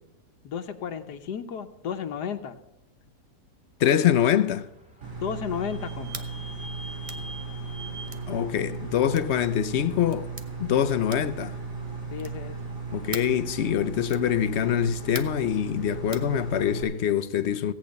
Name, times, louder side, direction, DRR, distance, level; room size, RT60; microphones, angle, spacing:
voice 1, 0.4-2.6 5.2-6.3 12.1-12.6, left 7 dB, 80° left, 1.5 m, -33 dB
voice 2, 3.8-4.7 8.3-10.3 10.6-11.6 12.9-17.7, left 10 dB, 60° left, 0.7 m, -24 dB
Vehicle / Squeak, 4.4-9.8, right 1 dB, 5° right, 1.9 m, -46 dB
sound 1, 5.0-16.8, right 4 dB, 85° right, 3.9 m, -36 dB
sound 2, 6.1-6.3 7.0-7.3 8.1-8.3 9.1-9.4 10.1-10.5 11.1-11.4 12.2-12.5 13.1-13.4 14.1-14.3 15.1-15.4 16.1-16.3, right 3 dB, 30° right, 0.7 m, -40 dB
16.5 x 8.7 x 5.2 m
omnidirectional pair, 1.7 m